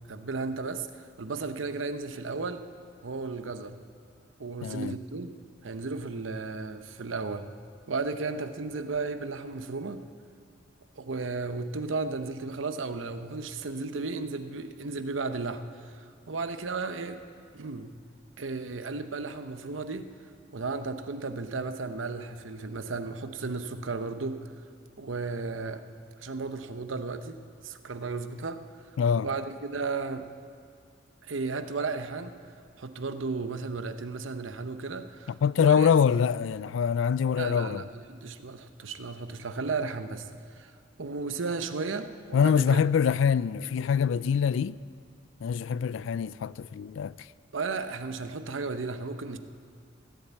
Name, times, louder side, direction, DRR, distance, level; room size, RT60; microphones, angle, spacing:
voice 1, 0.1-2.6 3.0-3.8 4.4-5.3 5.6-7.5 7.9-10.0 11.0-17.2 17.5-17.9 18.4-20.1 20.5-24.4 25.0-25.8 26.2-28.6 29.2-30.3 31.2-32.3 32.8-35.9 37.4-40.3 40.5-40.7 41.0-42.8 47.5-49.4, right 4 dB, 80° right, 0.8 m, -34 dB
voice 2, 4.6-4.9 29.0-29.3 35.4-37.8 42.3-44.8 45.4-47.1, left 7 dB, 75° left, 0.3 m, -24 dB
16.0 x 10.5 x 8.2 m
head